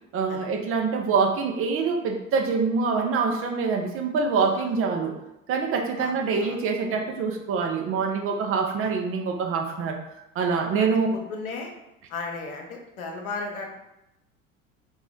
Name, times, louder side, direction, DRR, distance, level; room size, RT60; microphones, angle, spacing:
voice 1, 0.1-5.1 5.5-10.0 10.4-11.1, right 5 dB, 35° right, 3 dB, 0.4 m, -25 dB
voice 2, 6.0-6.6 8.8-8.9 10.8-11.7 12.1-13.8, left 3 dB, 85° left, 2 dB, 0.7 m, -35 dB
2.6 x 2.0 x 3.4 m, 0.88 s
hypercardioid pair, 75°, 41 cm